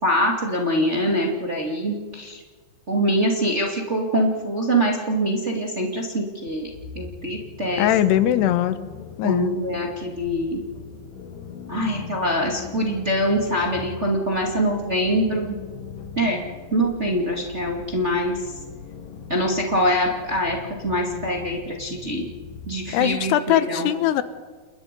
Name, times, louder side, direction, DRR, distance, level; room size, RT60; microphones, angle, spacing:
voice 1, 0.0-2.4 2.9-6.7 6.9-7.9 9.2-10.6 11.7-15.6 16.1-16.4 16.7-18.4 19.3-20.6 20.8-22.3 22.6-23.9, equal, 25° right, -1 dB, 1.8 m, -24 dB
sound 1, 6.5-23.3, left 7 dB, 65° left, 3.3 m, -40 dB
voice 2, 7.8-8.8 9.2-9.5 22.9-24.2, left 12 dB, 85° left, 12 dB, 3.0 m, -20 dB
30.0 x 21.5 x 5.3 m, 1.4 s
omnidirectional pair, 4.7 m